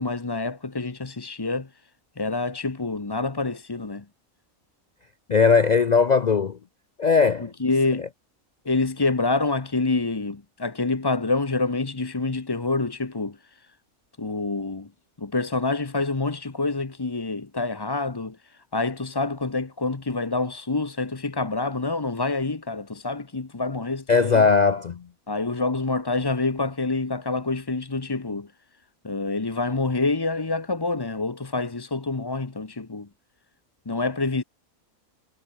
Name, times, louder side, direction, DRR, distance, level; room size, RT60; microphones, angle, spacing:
voice 1, 0.0-1.7 2.2-4.0 7.4-8.0 8.6-13.7 14.2-14.9 15.2-24.4 25.3-28.5 29.0-33.1 33.9-34.4, left 3 dB, 20° left, 0.8 m, -27 dB
voice 2, 5.3-6.6 7.0-7.5 24.1-25.0, left 5 dB, 60° left, 0.4 m, -19 dB
omnidirectional pair, 1.5 m